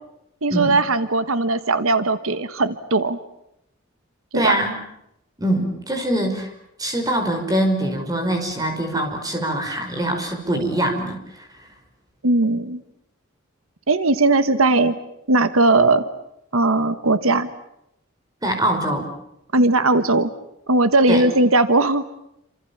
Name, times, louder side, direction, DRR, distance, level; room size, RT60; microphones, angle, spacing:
voice 1, 0.4-3.2 4.3-4.5 12.2-12.8 13.9-15.0 15.3-16.1 16.5-17.5 19.5-20.3 20.7-22.0, right 2 dB, 85° right, 12 dB, 1.4 m, -18 dB
voice 2, 4.3-4.8 5.4-6.5 6.8-11.5 18.4-19.1 21.1-21.3, right 1 dB, 20° right, 4 dB, 5.5 m, -23 dB
29.0 x 27.0 x 7.3 m, 0.82 s
head